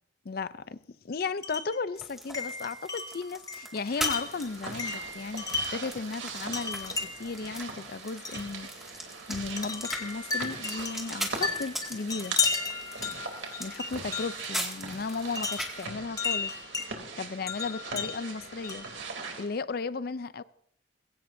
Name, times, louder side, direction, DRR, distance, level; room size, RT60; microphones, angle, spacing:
voice 1, 0.2-0.8 1.0-8.7 9.3-12.4 13.6-16.5 17.2-18.9 19.4-20.4, left 4 dB, 50° left, 0.5 m, -35 dB
Wind chime, 1.4-1.8 2.3-5.9 6.5-7.4 8.2-8.5 9.6-14.5 15.4-16.9 17.5-19.0, left 5 dB, 20° left, 1.1 m, -34 dB
sound 1, 1.9-15.8, equal, ahead, 2.1 m, -41 dB
sound 2, 3.8-19.5, right 4 dB, 80° right, 2.9 m, -41 dB
21.5 x 16.0 x 2.7 m
head